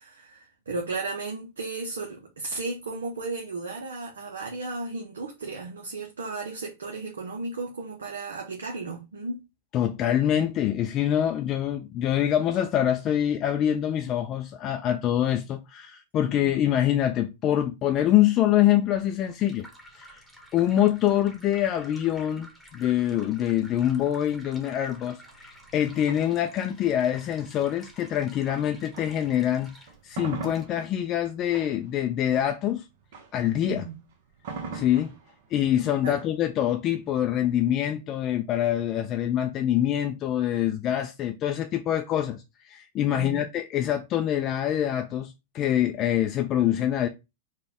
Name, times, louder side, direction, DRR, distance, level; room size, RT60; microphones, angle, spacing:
voice 1, 0.0-9.4 16.4-16.5 33.6-34.0 36.0-36.2 43.1-43.4, right 3 dB, 85° right, 0.7 m, -34 dB
voice 2, 9.7-19.7 19.9-20.2 20.5-29.7 30.0-32.8 33.3-33.8 34.7-35.1 35.5-47.1, left 11 dB, 35° left, 0.4 m, -25 dB
sound 1, 18.9-30.7, equal, 5° right, 1.1 m, -51 dB
sound 2, 25.2-29.4 29.8-37.7, right 5 dB, 60° right, 0.9 m, -43 dB
4.0 x 2.3 x 3.5 m
hypercardioid pair, 115°, 0 cm